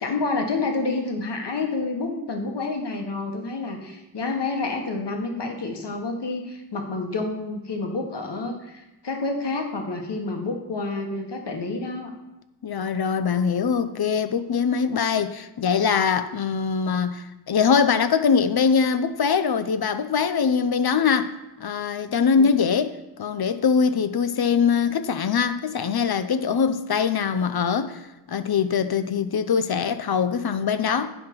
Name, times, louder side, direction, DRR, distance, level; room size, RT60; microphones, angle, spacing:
voice 1, 0.0-12.1, left 3 dB, 85° left, 1.3 m, -29 dB
voice 2, 12.6-21.3 21.6-28.0 28.3-31.1, left 6 dB, 65° left, 0.6 m, -22 dB
9.6 x 5.1 x 5.9 m
wide cardioid pair, 95°, 40 cm